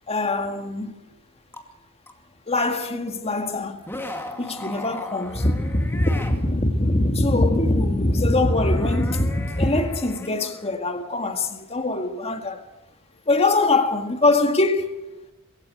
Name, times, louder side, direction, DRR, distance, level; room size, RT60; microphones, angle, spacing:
voice 1, 0.1-1.0 2.5-3.8 4.4-12.6 13.3-15.0, left 2 dB, 30° left, 2.0 m, -22 dB
sound 1, 1.5-1.6 2.1-2.2 3.8-6.4 8.3-11.0, left 1 dB, 10° left, 2.3 m, -37 dB
22.0 x 16.0 x 7.8 m
head